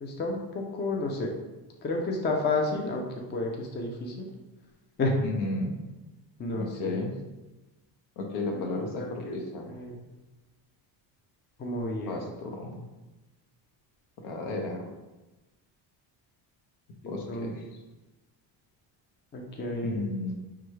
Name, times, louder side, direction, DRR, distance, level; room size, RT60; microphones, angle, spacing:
voice 1, 0.0-1.3 1.8-4.3 5.0-5.2 6.4-7.0 8.8-8.9 9.2-9.4 9.7-10.0 11.6-12.2 17.0-17.5 19.3-20.0, left 2 dB, 20° left, 1 dB, 0.5 m, -31 dB
voice 2, 5.2-5.8 6.5-7.2 8.2-9.7 12.1-12.9 14.2-14.9 17.1-17.6 19.8-20.3, left 2 dB, 70° left, 2 dB, 1.0 m, -33 dB
5.7 x 2.4 x 3.1 m, 1.1 s
cardioid pair, 110°, 48 cm